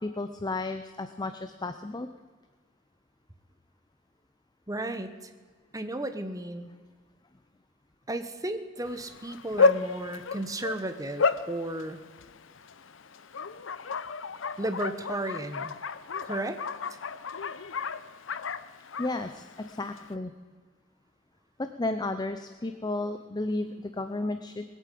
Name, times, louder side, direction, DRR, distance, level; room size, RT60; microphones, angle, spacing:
voice 1, 0.0-2.1 19.0-20.3 21.6-24.6, left 2 dB, 20° left, 9 dB, 0.6 m, -33 dB
voice 2, 4.7-5.3 5.7-6.7 8.1-12.0 14.6-15.7 16.2-16.6, right 1 dB, 20° right, 9 dB, 1.1 m, -34 dB
Bark, 8.9-20.1, left 4 dB, 80° left, 0.7 m, -32 dB
20.0 x 8.4 x 8.5 m, 1.5 s
head